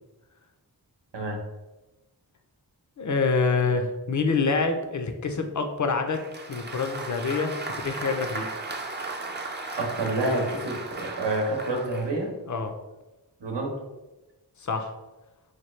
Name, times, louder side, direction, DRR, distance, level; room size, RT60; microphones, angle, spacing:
voice 1, 3.0-6.2 6.5-8.5 12.5-12.7 14.6-14.9, left 4 dB, 45° left, 6 dB, 0.5 m, -26 dB
Applause, 6.1-12.1, right 3 dB, 25° right, 0.4 m, -36 dB
voice 2, 9.8-12.3 13.4-13.7, right 2 dB, 85° right, 0 dB, 0.9 m, -28 dB
4.4 x 2.3 x 3.1 m, 1.1 s
wide cardioid pair, 45°, 41 cm